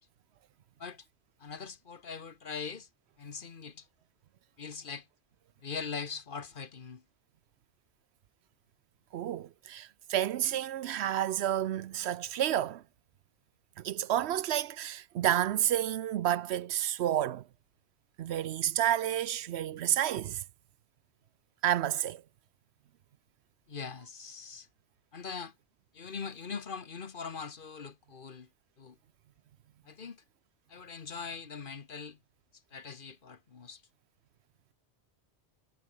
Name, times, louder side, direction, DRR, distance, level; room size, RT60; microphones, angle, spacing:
voice 1, 1.4-2.9 3.2-3.8 4.6-5.1 5.6-7.0 23.7-24.7 25.1-25.5 25.9-28.5 28.8-29.0 29.8-30.2 30.7-32.2 32.7-33.8, left 5 dB, 50° left, 1.3 m, -41 dB
voice 2, 9.1-12.8 13.8-17.5 18.2-20.4 21.6-22.2, right 11 dB, 75° right, 0.9 m, -30 dB
omnidirectional pair, 1.1 m